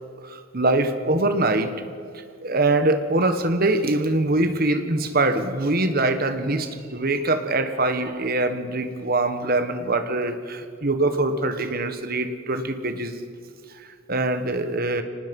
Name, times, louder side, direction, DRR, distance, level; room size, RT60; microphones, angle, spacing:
voice 1, 0.2-1.7 2.4-13.3 13.8-15.0, right 2 dB, 45° right, 8 dB, 1.5 m, -23 dB
24.5 x 19.5 x 5.5 m, 2.2 s
head